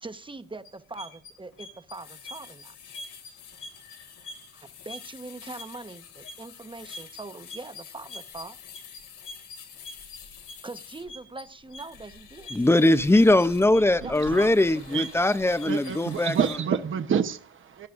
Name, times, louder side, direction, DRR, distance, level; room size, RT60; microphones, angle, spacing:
voice 1, 0.0-2.7 4.5-8.6 10.6-12.5 14.0-14.2 14.7-14.8, right 3 dB, 15° right, 0.9 m, -42 dB
sound 1, 0.6-16.6, left 4 dB, 80° left, 2.5 m, -45 dB
voice 2, 12.5-16.4, left 1 dB, 10° left, 0.6 m, -21 dB
voice 3, 14.0-14.5 14.9-17.9, right 7 dB, 40° right, 0.9 m, -29 dB
18.5 x 11.0 x 2.5 m
cardioid pair, 90°, 30 cm